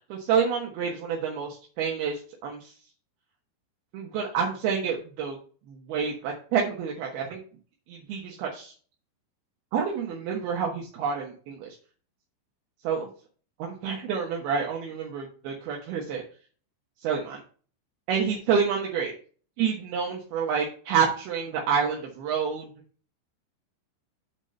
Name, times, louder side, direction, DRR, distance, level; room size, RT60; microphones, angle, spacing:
voice 1, 0.1-2.7 3.9-5.4 5.7-7.4 7.9-8.7 9.7-11.7 12.8-13.1 13.6-16.2 17.0-17.4 18.1-19.1 19.6-22.6, right 6 dB, 70° right, 0 dB, 2.5 m, -28 dB
7.9 x 4.5 x 6.5 m, 0.41 s
omnidirectional pair, 5.7 m